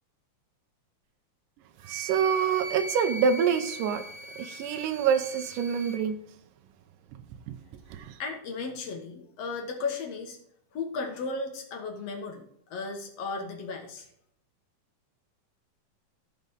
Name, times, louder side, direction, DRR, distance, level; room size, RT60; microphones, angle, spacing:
Wind instrument woodwind instrument, 1.8-6.0, right 1 dB, 75° right, 2.4 m, -40 dB
voice 1, 1.9-4.0 4.4-6.2 7.5-7.6 7.9-8.1, right 7 dB, 90° right, 7 dB, 2.3 m, -26 dB
voice 2, 8.2-10.4 10.7-12.4 12.7-14.1, left 4 dB, 60° left, 2 dB, 2.2 m, -35 dB
15.5 x 5.3 x 3.6 m, 0.72 s
omnidirectional pair, 3.6 m